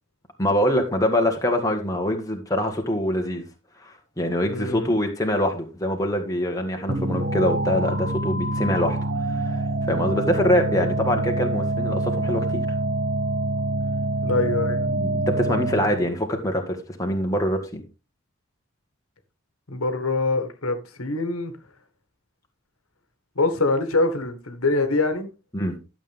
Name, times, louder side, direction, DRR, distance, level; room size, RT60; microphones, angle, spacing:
voice 1, 0.4-3.5 3.8-9.0 9.3-9.6 9.9-12.7 15.0-17.8 25.5-25.8, equal, 15° left, 1.7 m, -24 dB
voice 2, 4.5-4.9 14.2-14.9 19.7-21.5 23.3-25.3, left 3 dB, 80° left, 1.6 m, -24 dB
sound 1, 6.9-16.1, right 2 dB, 50° right, 1.3 m, -25 dB
12.0 x 7.6 x 3.5 m
head